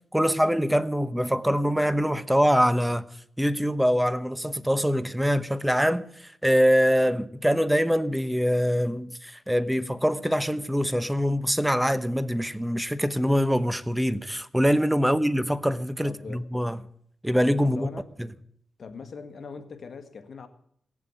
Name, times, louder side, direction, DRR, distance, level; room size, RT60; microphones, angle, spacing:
voice 1, 0.1-3.0 3.4-16.8 17.2-17.9, equal, 5° right, 0.9 m, -24 dB
voice 2, 16.0-16.4 17.6-18.0 18.8-20.5, left 5 dB, 65° left, 1.8 m, -41 dB
18.5 x 7.4 x 9.1 m
cardioid pair, 65°, 0 cm